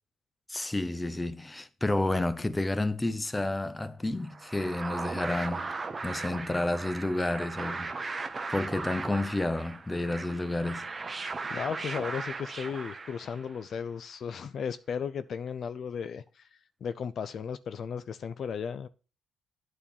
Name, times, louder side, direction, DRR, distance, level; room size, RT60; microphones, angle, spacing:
voice 1, 0.5-5.7 6.0-8.2 8.5-10.9, left 2 dB, 15° left, 0.7 m, -30 dB
sound 1, 4.2-13.6, right 4 dB, 30° right, 0.9 m, -38 dB
voice 2, 11.5-16.5 16.8-18.9, left 7 dB, 55° left, 0.4 m, -35 dB
8.9 x 4.4 x 7.0 m
cardioid pair, 90°, 0 cm